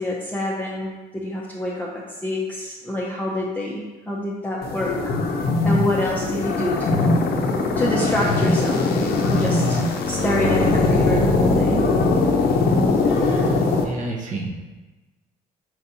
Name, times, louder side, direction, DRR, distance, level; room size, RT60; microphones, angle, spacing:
voice 1, 0.0-7.1 7.8-11.8, left 1 dB, 10° left, -5 dB, 0.5 m, -27 dB
sound 1, 4.6-13.8, left 3 dB, 65° left, 0.6 m, -20 dB
voice 2, 13.1-13.5 13.8-14.5, right 2 dB, 50° right, 1 dB, 0.7 m, -30 dB
4.6 x 4.1 x 2.6 m, 1.2 s
cardioid pair, 110°, 17 cm